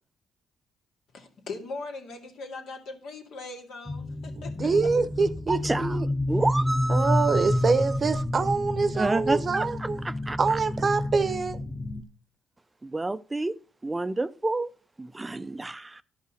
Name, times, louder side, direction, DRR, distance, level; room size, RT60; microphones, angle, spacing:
voice 1, 1.1-4.6, left 3 dB, 75° left, 2.3 m, -40 dB
sound 1, 3.9-12.0, left 1 dB, 10° left, 0.8 m, -29 dB
voice 2, 4.4-6.1 6.9-10.0 10.4-11.6, right 4 dB, 40° right, 0.8 m, -25 dB
voice 3, 5.5-6.0 6.3-7.7 9.0-10.6 12.8-13.6 13.8-14.7 15.0-16.0, right 2 dB, 15° right, 0.4 m, -29 dB
11.0 x 5.5 x 6.3 m
cardioid pair, 90°, 0 cm